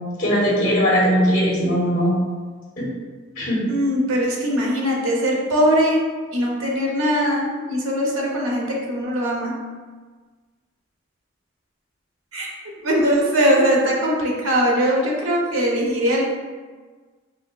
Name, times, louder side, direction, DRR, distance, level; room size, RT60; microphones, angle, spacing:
voice 1, 0.2-2.1 2.8-2.9 3.3-3.7, equal, 40° left, -8 dB, 1.3 m, -19 dB
voice 2, 3.7-6.0 6.3-9.6 12.3-12.5 12.8-16.2, equal, 85° right, -2 dB, 0.6 m, -21 dB
3.4 x 2.5 x 2.2 m, 1.4 s
head